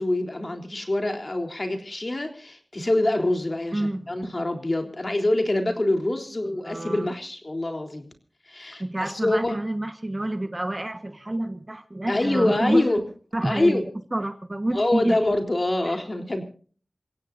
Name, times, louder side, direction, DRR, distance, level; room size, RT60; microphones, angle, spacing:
voice 1, 0.0-8.1 8.5-9.6 12.1-13.1 13.4-13.8 14.7-16.4, left 1 dB, 40° left, 3.7 m, -25 dB
voice 2, 3.7-4.1 6.6-7.1 8.8-12.9 13.3-13.8 14.1-15.2 15.8-16.0, right 1 dB, 30° right, 1.4 m, -28 dB
28.5 x 16.5 x 2.7 m
wide cardioid pair, 55°, 0 cm